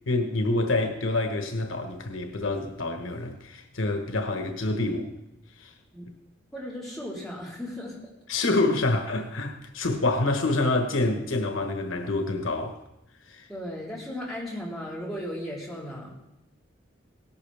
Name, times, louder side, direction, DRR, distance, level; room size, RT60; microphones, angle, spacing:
voice 1, 0.1-5.1 5.6-5.7 8.3-12.8 13.3-13.5, left 2 dB, 90° left, 1.3 m, -27 dB
voice 2, 6.5-8.0 13.5-16.1, equal, ahead, 3.6 m, -36 dB
17.5 x 11.5 x 3.5 m
head